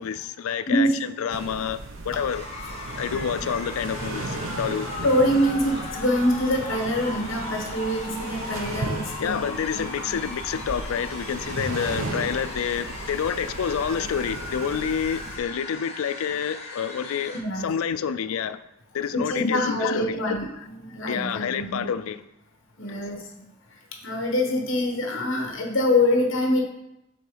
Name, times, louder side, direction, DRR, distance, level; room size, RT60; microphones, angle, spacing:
voice 1, 0.0-2.4 3.0-4.9 9.2-18.6 18.9-20.4 21.1-22.2 22.9-23.0, left 7 dB, 80° left, 0.4 m, -28 dB
sound 1, 1.3-15.4, right 2 dB, 70° right, 0.8 m, -35 dB
sound 2, 2.3-17.4, left 2 dB, 30° left, 1.2 m, -38 dB
voice 2, 5.0-9.5 10.0-10.1 17.3-17.7 19.1-21.8 22.8-23.2 24.0-26.6, left 1 dB, 65° left, 1.4 m, -24 dB
7.0 x 3.9 x 4.9 m
head